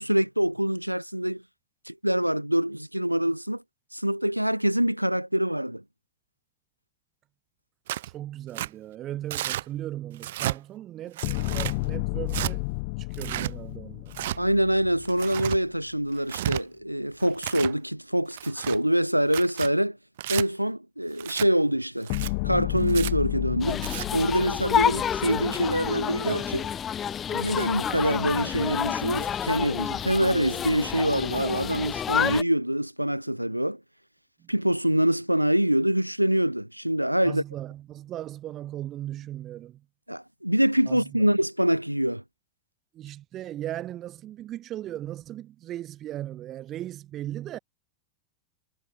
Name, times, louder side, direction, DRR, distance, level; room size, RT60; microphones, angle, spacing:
voice 1, 0.0-1.4 1.9-3.6 3.9-5.8 14.4-20.0 20.3-22.1 22.4-26.7 27.3-33.8 34.5-37.4 40.1-42.2, equal, 90° right, 1.6 m, -25 dB
Tearing, 7.9-8.1 8.5-8.7 9.3-9.6 10.2-10.6 11.2-11.7 12.3-12.5 13.1-13.5 14.1-14.4 15.0-15.6 16.2-16.6 17.2-17.7 18.3-18.8 19.3-19.7 20.2-20.4 21.2-21.5 22.0-22.3 22.9-23.1 23.7-24.1, right 14 dB, 55° right, 1.0 m, -32 dB
voice 2, 8.0-12.6 13.0-14.2 34.4-34.5 37.2-39.8 40.9-41.2 42.9-47.6, right 13 dB, 30° right, 3.9 m, -37 dB
sound 1, 11.2-15.5 22.1-25.9, left 29 dB, 45° left, 2.0 m, -32 dB
sound 2, 23.6-32.4, left 8 dB, 25° left, 2.9 m, -29 dB
figure-of-eight pair, 90°, 0 cm